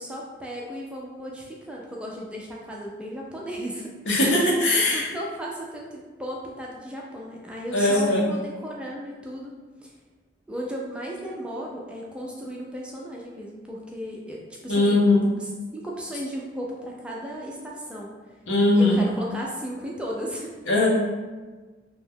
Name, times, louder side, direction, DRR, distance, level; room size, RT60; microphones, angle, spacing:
voice 1, 0.0-3.9 4.9-9.5 9.8-9.9 10.5-15.0 15.7-18.2 18.7-20.5, equal, 5° right, -3 dB, 0.3 m, -35 dB
voice 2, 4.1-5.1 7.7-8.3 14.7-15.3 18.5-19.1 20.7-20.9, left 2 dB, 75° left, -3 dB, 0.7 m, -20 dB
2.7 x 2.2 x 3.5 m, 1.3 s
head